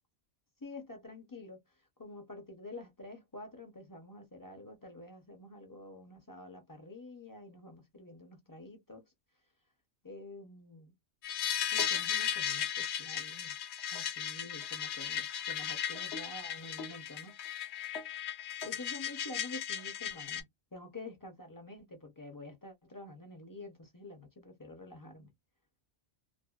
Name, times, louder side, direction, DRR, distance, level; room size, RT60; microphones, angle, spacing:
voice 1, 0.6-1.6 2.0-9.0 10.0-10.9 11.7-13.6 13.9-17.4 18.6-25.3, left 2 dB, 20° left, 0.6 m, -48 dB
sound 1, 11.2-20.4, left 9 dB, 70° left, 0.8 m, -36 dB
2.5 x 2.2 x 2.3 m
omnidirectional pair, 1.2 m